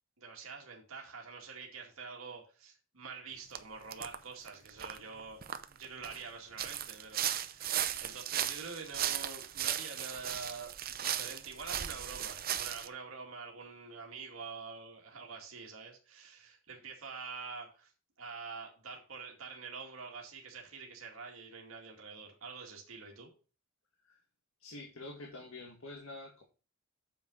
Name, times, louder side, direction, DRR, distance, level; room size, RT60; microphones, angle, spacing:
voice 1, 0.2-5.4 5.7-17.9 18.2-23.3, right 4 dB, 85° right, 0 dB, 2.2 m, -46 dB
sound 1, 3.6-3.7 3.9-4.2 4.5-6.2 6.6-12.9, right 10 dB, 45° right, 0.7 m, -36 dB
voice 2, 24.6-26.4, left 2 dB, 80° left, 2 dB, 1.9 m, -47 dB
8.8 x 7.1 x 4.0 m, 0.35 s
head